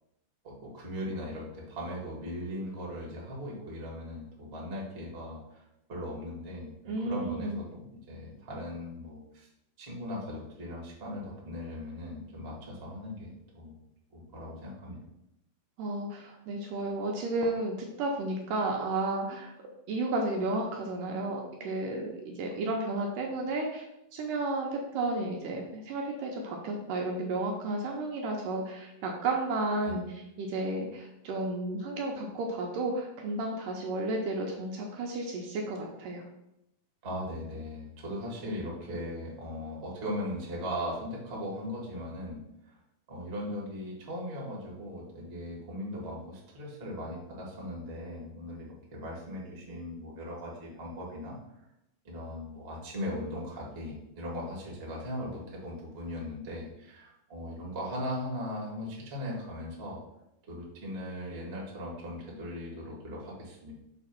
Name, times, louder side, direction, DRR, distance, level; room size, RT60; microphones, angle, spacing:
voice 1, 0.4-5.6 5.9-9.5 9.8-13.8 14.1-15.0 29.8-29.9 37.0-42.8 43.1-51.4 52.0-60.0 60.5-63.7, left 1 dB, 60° right, -4 dB, 0.6 m, -39 dB
voice 2, 6.9-7.6 15.8-19.5 19.9-23.8 24.1-36.2, right 2 dB, 80° right, 0 dB, 2.0 m, -32 dB
6.7 x 2.9 x 5.7 m, 0.85 s
omnidirectional pair, 4.4 m